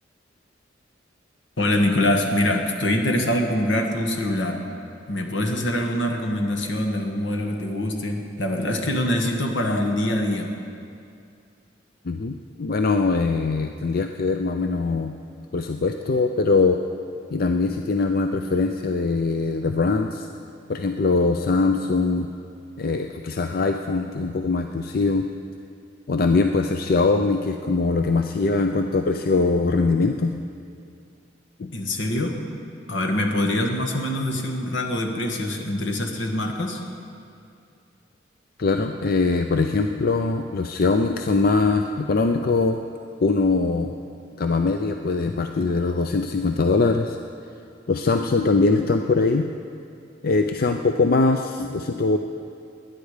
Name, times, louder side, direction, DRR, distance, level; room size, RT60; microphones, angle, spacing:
voice 1, 1.6-4.6 5.1-10.6 31.7-32.4 32.9-36.8, left 1 dB, 80° left, 3 dB, 1.6 m, -24 dB
voice 2, 12.1-15.1 15.5-16.8 17.3-20.3 20.7-22.3 22.8-25.3 26.1-30.3 31.6-31.7 38.6-42.8 43.2-43.9 44.4-47.2 47.9-49.5 50.2-52.2, left 3 dB, 50° left, 5 dB, 0.5 m, -22 dB
19.5 x 10.5 x 5.0 m, 2.5 s
head